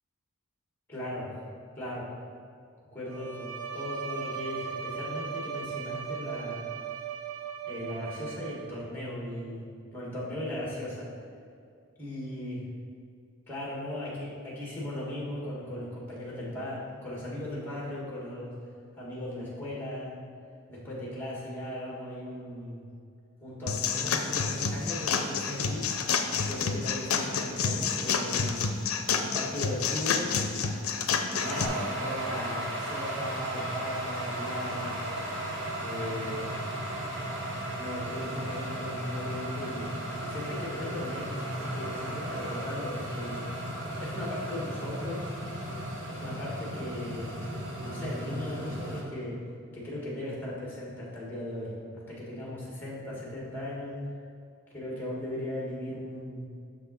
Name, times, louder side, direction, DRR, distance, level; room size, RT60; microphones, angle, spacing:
voice 1, 0.9-1.3 1.8-2.1 2.9-6.6 7.7-9.6 9.9-11.1 12.0-12.6 13.5-18.5 18.9-20.1 20.7-22.8 23.4-25.9 26.4-28.6 29.2-30.7 31.3-35.0 35.8-36.6 37.7-39.9 40.2-43.4 44.0-45.4 46.1-47.4 47.8-49.4 49.7-54.0 54.7-56.4, left 1 dB, 10° left, -5 dB, 1.7 m, -37 dB
Bowed string instrument, 3.1-8.9, right 7 dB, 80° right, 0.8 m, -38 dB
sound 1, 23.7-31.7, left 5 dB, 80° left, 0.5 m, -29 dB
sound 2, 31.3-49.0, right 1 dB, 55° right, 1.3 m, -35 dB
6.6 x 5.7 x 4.1 m, 2.3 s
head